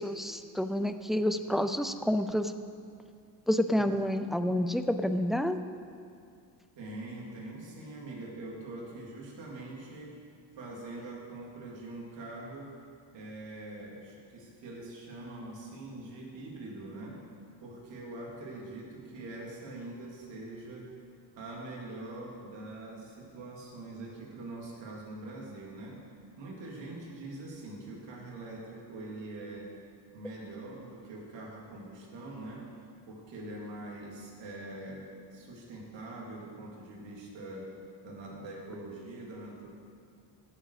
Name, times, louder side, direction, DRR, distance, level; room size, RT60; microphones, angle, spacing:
voice 1, 0.0-2.5 3.5-5.6, equal, ahead, 9 dB, 0.3 m, -29 dB
voice 2, 6.7-10.1 10.5-12.7 13.1-17.2 17.6-20.9 21.4-26.0 26.4-29.7 30.1-32.7 33.1-37.7 38.0-39.7, right 2 dB, 75° right, -3 dB, 3.0 m, -43 dB
16.0 x 7.6 x 4.9 m, 2.3 s
cardioid pair, 120°, 44 cm